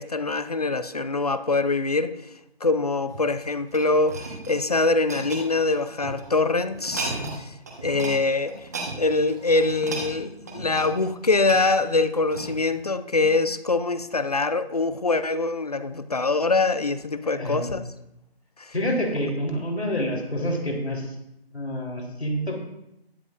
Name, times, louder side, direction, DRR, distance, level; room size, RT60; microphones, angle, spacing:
voice 1, 0.0-2.2 2.6-7.5 7.8-8.7 9.0-17.8 18.6-18.7, left 3 dB, 40° left, 13 dB, 0.5 m, -24 dB
sound 1, 3.1-6.2 6.7-7.4 7.7-8.2 8.5-12.7 13.3-13.5, right 3 dB, 15° right, 1.1 m, -35 dB
voice 2, 17.2-17.7 18.7-21.2 21.5-22.6, equal, 85° left, 0 dB, 3.5 m, -27 dB
20.5 x 7.2 x 2.5 m, 0.83 s
figure-of-eight pair, 170°, 31 cm